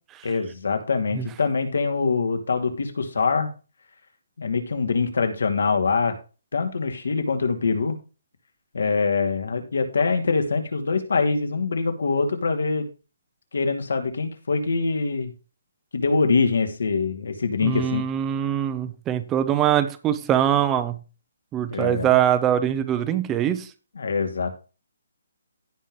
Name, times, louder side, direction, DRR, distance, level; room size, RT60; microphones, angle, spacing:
voice 1, 0.2-3.5 4.4-6.1 6.5-8.0 8.7-12.9 13.5-15.3 15.9-18.0 21.7-22.2 23.9-24.6, left 4 dB, 75° left, 7 dB, 2.6 m, -24 dB
voice 2, 17.6-21.0 21.5-23.7, right 10 dB, 10° right, 10 dB, 0.6 m, -23 dB
16.5 x 5.6 x 3.2 m, 0.33 s
hypercardioid pair, 175°, 0 cm